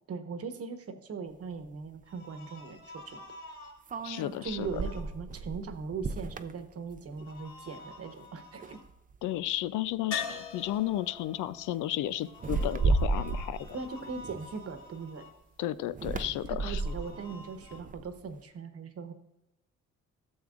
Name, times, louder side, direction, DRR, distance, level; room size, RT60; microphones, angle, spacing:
voice 1, 0.1-3.2 4.4-8.8 13.7-15.3 16.6-19.1, right 5 dB, 50° right, 8 dB, 1.1 m, -39 dB
sound 1, 1.6-1.7 3.9-7.5 7.8-8.2 8.6-9.3 10.1-10.3 10.6-11.0 12.3-15.0 15.9-18.3, right 3 dB, 25° right, 0.5 m, -34 dB
sound 2, 2.0-3.8 4.3-5.0 7.2-8.8 12.3-15.3 16.7-17.8, left 1 dB, 30° left, 3.4 m, -50 dB
voice 2, 4.0-4.7 9.2-13.6 15.6-16.8, left 13 dB, 80° left, 15 dB, 0.5 m, -33 dB
sound 3, 10.1-14.0 16.6-16.7 17.0-17.1, left 6 dB, 60° left, 1.9 m, -42 dB
12.5 x 7.2 x 2.5 m, 0.90 s
cardioid pair, 90°, 30 cm